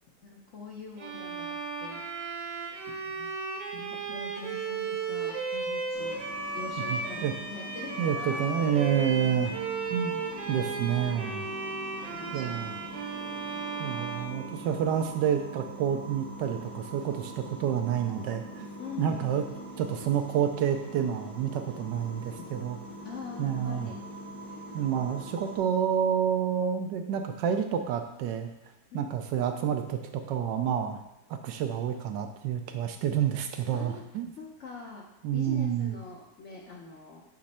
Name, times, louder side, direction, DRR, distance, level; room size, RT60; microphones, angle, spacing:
voice 1, 0.2-2.0 2.3-2.8 3.0-3.3 3.7-7.2 7.5-8.9 10.5-11.0 12.1-13.6 18.8-19.3 22.4-22.5 23.0-24.0 24.4-24.8 25.1-25.3 28.9-29.1 33.7-34.0 34.4-35.1 35.3-37.2, left 4 dB, 55° left, -2 dB, 0.8 m, -44 dB
Bowed string instrument, 1.0-15.1, right 4 dB, 60° right, 1.4 m, -35 dB
sound 1, 5.9-25.6, right 1 dB, 80° left, 3.1 m, -43 dB
voice 2, 6.9-7.3 8.0-9.6 9.9-11.5 12.3-12.7 13.8-18.7 19.0-19.5 19.8-22.8 23.4-23.9 24.7-28.5 28.9-31.0 31.3-34.3 35.2-35.9, right 8 dB, 75° right, 6 dB, 1.2 m, -29 dB
8.3 x 3.2 x 4.2 m, 0.89 s
omnidirectional pair, 2.0 m